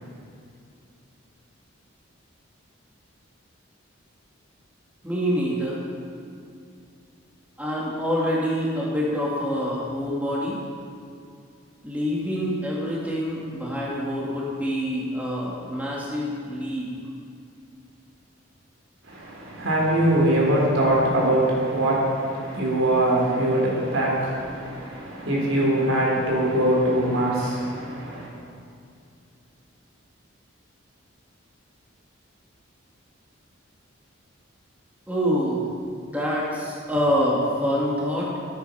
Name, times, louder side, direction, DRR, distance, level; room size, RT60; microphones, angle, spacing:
voice 1, 5.0-5.8 7.6-10.6 11.8-16.9 35.1-35.7 36.0-38.3, equal, 10° right, -6 dB, 2.4 m, -26 dB
voice 2, 19.1-28.3, right 1 dB, 80° right, -4 dB, 3.9 m, -22 dB
15.0 x 9.1 x 5.9 m, 2.4 s
head